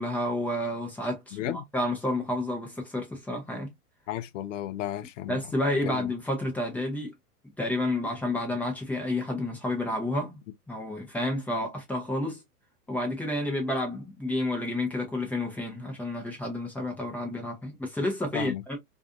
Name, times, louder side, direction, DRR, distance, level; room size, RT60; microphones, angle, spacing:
voice 1, 0.0-3.7 5.3-7.1 7.6-10.4 10.7-12.4 12.9-18.8, left 1 dB, 5° left, 0.6 m, -30 dB
voice 2, 1.3-1.6 4.1-5.4 5.8-6.1 18.3-18.6, left 12 dB, 55° left, 0.5 m, -34 dB
2.5 x 2.5 x 2.3 m
hypercardioid pair, 110°, 46 cm